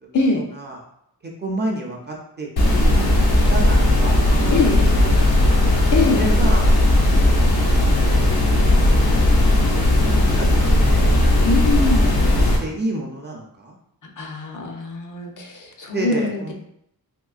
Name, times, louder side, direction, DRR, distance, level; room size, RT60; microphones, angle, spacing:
voice 1, 0.4-0.8 1.2-4.5 5.0-5.6 6.1-6.7 8.1-9.3 10.2-11.2 12.0-13.7 15.9-16.5, right 1 dB, 30° right, -1 dB, 0.5 m, -30 dB
sound 1, 2.6-12.6, left 1 dB, 90° left, 0.8 m, -16 dB
voice 2, 4.5-4.9 5.9-6.2 11.4-12.2 14.2-16.5, left 3 dB, 55° left, 2 dB, 0.6 m, -23 dB
3.6 x 3.0 x 2.3 m, 0.75 s
wide cardioid pair, 165°, 36 cm